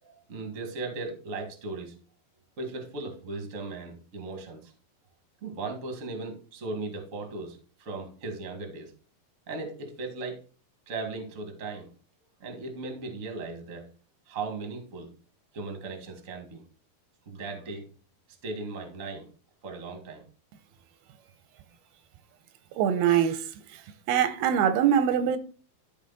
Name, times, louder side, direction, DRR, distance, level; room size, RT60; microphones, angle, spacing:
voice 1, 0.0-1.9 2.6-4.7 5.4-8.9 9.5-10.4 10.9-11.9 12.4-13.9 14.3-15.1 15.5-16.6 17.2-17.9 18.4-19.3 19.6-20.2, right 3 dB, 35° right, 1.2 m, -37 dB
voice 2, 22.8-23.5 24.1-25.4, right 9 dB, 85° right, 2.6 m, -23 dB
12.5 x 4.3 x 4.0 m
omnidirectional pair, 4.4 m